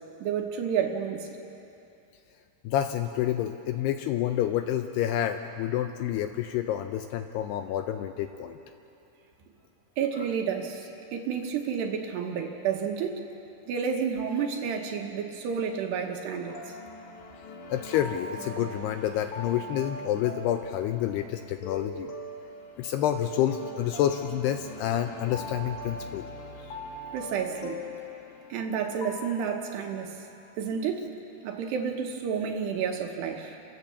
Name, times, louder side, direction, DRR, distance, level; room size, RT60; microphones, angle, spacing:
voice 1, 0.2-1.3 10.0-13.2 13.7-16.7 27.1-27.8 28.5-30.1 30.6-31.1 31.4-33.6, right 7 dB, 75° right, 3 dB, 3.1 m, -30 dB
voice 2, 2.6-8.6 17.7-22.1 22.8-26.3, left 11 dB, 80° left, 7 dB, 2.5 m, -28 dB
sound 1, 16.4-29.6, left 1 dB, 55° left, 2.2 m, -41 dB
29.0 x 15.5 x 7.2 m, 2.8 s
omnidirectional pair, 5.3 m